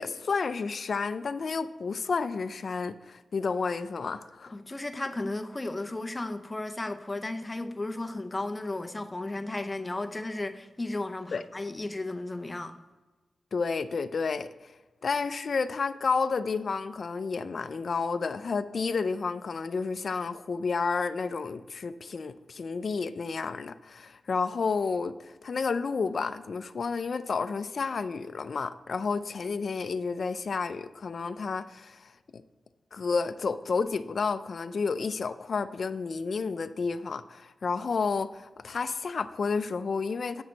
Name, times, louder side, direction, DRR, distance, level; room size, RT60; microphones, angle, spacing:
voice 1, 0.0-4.5 11.3-11.4 13.5-14.7 15.0-32.4 32.9-40.4, left 4 dB, 60° left, 0.4 m, -31 dB
voice 2, 4.5-12.8, left 2 dB, 20° left, 0.6 m, -34 dB
8.5 x 6.2 x 4.0 m
wide cardioid pair, 90°, 0 cm